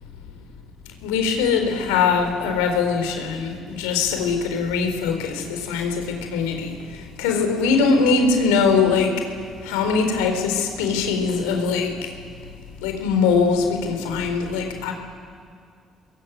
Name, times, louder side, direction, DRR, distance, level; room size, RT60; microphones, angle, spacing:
voice 1, 1.0-6.8 7.2-9.2 9.6-11.9 12.8-14.9, left 5 dB, 80° left, 5 dB, 4.2 m, -21 dB
25.5 x 22.0 x 9.3 m, 2.1 s
hypercardioid pair, 50°, 0 cm